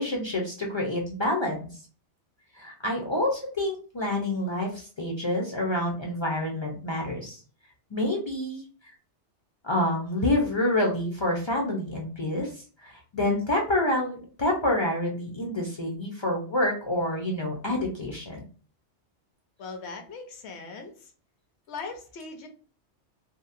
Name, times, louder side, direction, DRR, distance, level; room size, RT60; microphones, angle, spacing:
voice 1, 0.0-1.6 2.6-7.4 7.9-8.9 9.6-12.5 12.8-18.4, left 1 dB, 40° left, 0 dB, 0.4 m, -28 dB
voice 2, 19.6-21.1 21.7-22.5, left 4 dB, 70° left, 5 dB, 0.9 m, -39 dB
2.8 x 2.0 x 2.4 m, 0.39 s
omnidirectional pair, 1.2 m